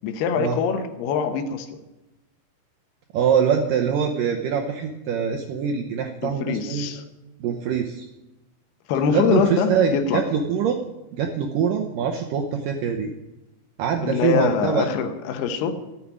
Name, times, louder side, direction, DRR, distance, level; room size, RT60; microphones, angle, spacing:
voice 1, 0.0-1.8 6.2-7.0 8.9-10.2 14.0-15.7, left 7 dB, 75° left, 7 dB, 3.0 m, -24 dB
voice 2, 3.1-6.9 7.4-8.1 9.1-10.8 11.1-13.1 13.8-14.9, right 7 dB, 75° right, 3 dB, 2.0 m, -23 dB
14.0 x 7.6 x 9.5 m, 0.98 s
omnidirectional pair, 4.9 m